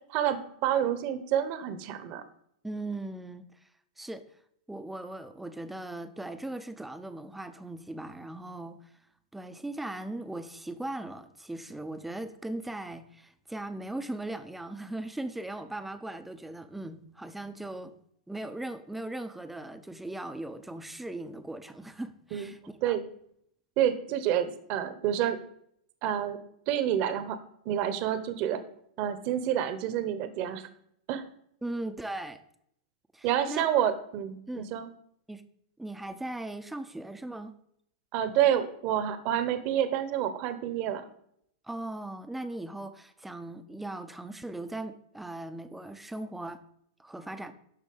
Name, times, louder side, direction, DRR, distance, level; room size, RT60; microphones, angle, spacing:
voice 1, 0.1-2.2 22.3-22.5 22.8-23.0 23.8-25.4 26.0-26.4 26.7-27.4 27.6-28.6 29.0-30.7 31.1-31.2 33.2-34.9 38.1-41.0, right 10 dB, 40° right, 11 dB, 1.1 m, -28 dB
voice 2, 2.6-3.5 4.0-4.2 4.7-8.9 9.3-17.9 18.3-22.6 22.8-23.0 31.6-32.4 33.1-33.7 34.5-34.7 35.3-35.4 35.8-37.5 41.6-46.6 47.0-47.5, right 2 dB, 5° right, 9 dB, 0.8 m, -38 dB
12.0 x 4.1 x 8.0 m, 0.69 s
supercardioid pair, 155°, 4 cm